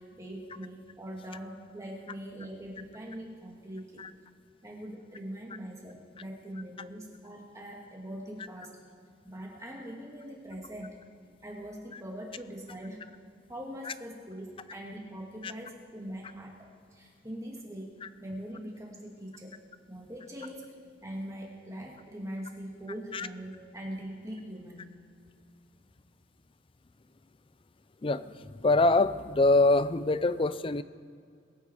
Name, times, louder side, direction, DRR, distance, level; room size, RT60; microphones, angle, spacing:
voice 1, 0.0-4.0 4.6-8.8 9.2-11.0 11.4-13.0 13.5-17.9 18.2-19.6 19.9-20.7 21.0-24.9, equal, 15° right, -2 dB, 2.6 m, -42 dB
voice 2, 28.0-30.8, left 2 dB, 25° left, 14 dB, 0.4 m, -25 dB
22.5 x 9.0 x 4.8 m, 2.3 s
head